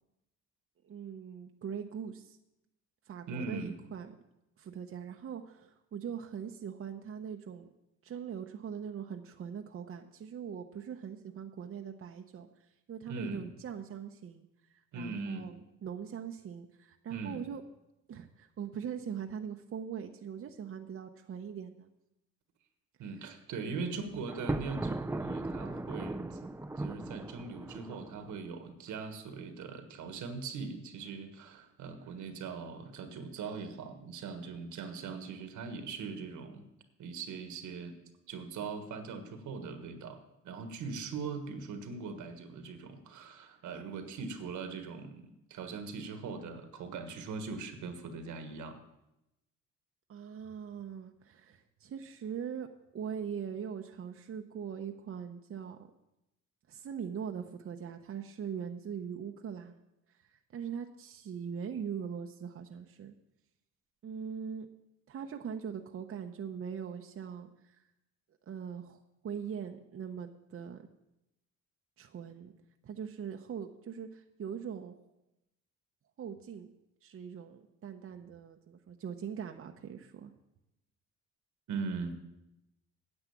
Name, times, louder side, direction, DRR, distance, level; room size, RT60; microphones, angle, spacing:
voice 1, 0.8-2.4 3.1-4.1 4.6-7.7 8.0-12.5 12.9-14.5 14.9-17.6 18.1-21.9 23.6-23.9 50.1-52.7 52.9-55.9 56.7-59.8 60.1-63.1 64.0-64.7 65.1-67.8 68.5-70.9 72.0-72.5 72.8-74.9 76.2-76.7 77.0-80.3, right 7 dB, 50° right, 4 dB, 0.8 m, -41 dB
voice 2, 3.3-3.8 13.1-13.5 14.9-15.5 17.1-17.4 23.0-26.5 26.8-36.7 37.0-37.9 38.3-48.8 81.7-82.2, right 4 dB, 80° right, 8 dB, 1.5 m, -41 dB
Thunder, 24.3-28.4, right 2 dB, 10° right, 0.5 m, -37 dB
9.9 x 7.9 x 7.1 m, 0.90 s
cardioid pair, 90°, 30 cm